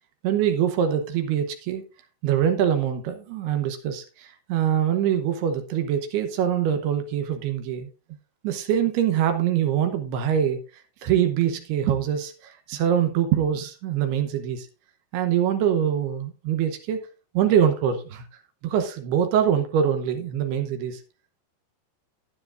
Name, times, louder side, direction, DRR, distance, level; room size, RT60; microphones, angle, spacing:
voice 1, 0.2-1.8 2.2-7.9 8.4-14.7 15.1-17.0 17.3-18.2 18.6-21.0, right 9 dB, 75° right, 2.5 m, -24 dB
12.5 x 9.7 x 2.5 m
omnidirectional pair, 5.6 m